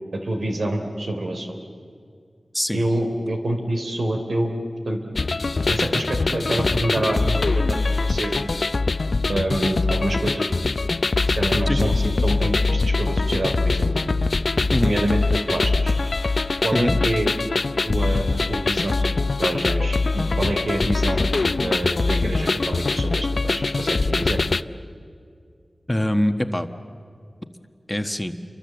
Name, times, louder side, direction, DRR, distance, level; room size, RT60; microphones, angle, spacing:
voice 1, 0.1-1.5 2.7-4.5 4.8-5.0 5.7-7.8 8.0-8.5 9.3-10.5 11.4-13.9 14.8-15.9 16.6-17.3 17.9-21.3 21.5-24.4, right 1 dB, 85° right, 4 dB, 3.4 m, -26 dB
sound 1, 5.2-24.6, left 3 dB, 60° left, 0.6 m, -23 dB
voice 2, 25.9-26.7 27.9-28.3, left 1 dB, 10° left, 7 dB, 1.3 m, -23 dB
29.0 x 24.0 x 7.8 m, 2.3 s
wide cardioid pair, 75°, 0 cm